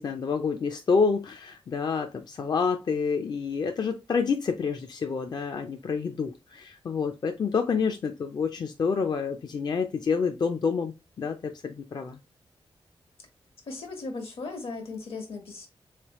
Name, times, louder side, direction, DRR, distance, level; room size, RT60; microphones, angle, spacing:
voice 1, 0.0-12.2, left 5 dB, 45° left, 0.4 m, -28 dB
voice 2, 13.6-15.7, left 3 dB, 75° left, 1.3 m, -37 dB
3.5 x 3.2 x 2.9 m
wide cardioid pair, 125°, 10 cm